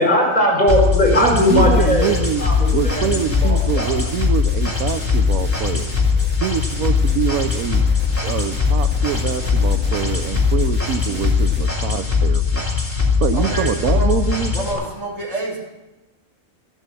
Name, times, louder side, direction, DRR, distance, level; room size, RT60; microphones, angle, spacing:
voice 1, 0.0-3.9 14.6-14.7, equal, 30° left, -2 dB, 4.8 m, -19 dB
sound 1, 0.7-14.7, left 5 dB, 10° left, 2.5 m, -20 dB
voice 2, 1.2-2.4 2.7-5.9 6.4-7.8 8.2-12.7 13.2-14.5, right 9 dB, 85° right, 12 dB, 1.1 m, -24 dB
sound 2, 1.4-11.7, left 2 dB, 5° right, 1.5 m, -35 dB
voice 3, 13.3-14.2 14.5-15.6, right 2 dB, 50° right, -4 dB, 3.2 m, -27 dB
13.5 x 8.9 x 7.6 m, 1.1 s
omnidirectional pair, 1.5 m